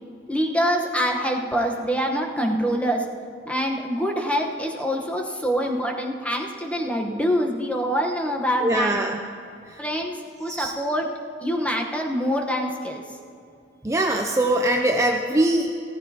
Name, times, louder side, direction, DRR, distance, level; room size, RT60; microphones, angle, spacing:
voice 1, 0.3-3.0 3.4-9.0 9.8-11.1 11.4-13.0, equal, 10° left, 1 dB, 1.0 m, -25 dB
voice 2, 8.6-9.2 9.7-9.8 10.5-10.7 13.8-15.7, right 1 dB, 15° right, 2 dB, 0.5 m, -22 dB
16.0 x 14.0 x 2.9 m, 2.5 s
head